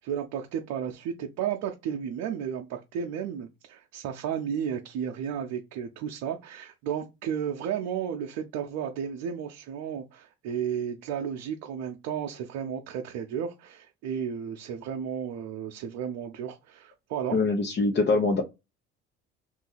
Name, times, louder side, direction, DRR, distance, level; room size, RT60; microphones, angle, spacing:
voice 1, 0.0-17.4, right 8 dB, 70° right, 0.7 m, -33 dB
voice 2, 17.3-18.4, left 3 dB, 35° left, 0.9 m, -23 dB
2.7 x 2.5 x 3.9 m
hypercardioid pair, 60°, 30 cm